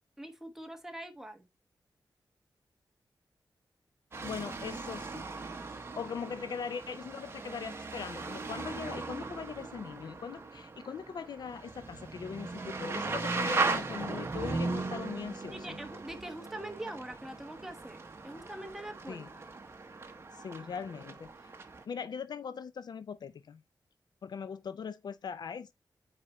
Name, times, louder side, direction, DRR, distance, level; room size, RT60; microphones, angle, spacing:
voice 1, 0.2-1.5 15.5-18.0 18.2-19.3, right 1 dB, 5° right, 1.0 m, -43 dB
sound 1, 4.1-21.8, right 3 dB, 35° right, 0.9 m, -38 dB
voice 2, 4.2-5.2 5.7-15.8 19.1-19.3 20.3-21.3 21.9-23.6 24.2-25.7, left 6 dB, 65° left, 0.5 m, -40 dB
8.5 x 4.3 x 3.0 m
wide cardioid pair, 180°, 8 cm